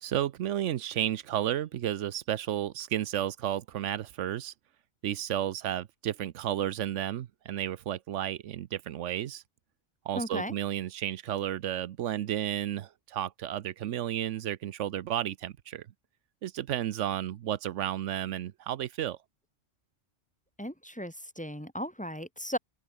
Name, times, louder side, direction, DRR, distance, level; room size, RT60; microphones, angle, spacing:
voice 1, 0.0-4.5 5.0-9.4 10.0-15.9 16.4-19.2, right 11 dB, 85° right, 1.0 m, -32 dB
voice 2, 10.2-10.5 20.6-22.6, equal, 5° left, 2.9 m, -36 dB
open air
omnidirectional pair, 1.2 m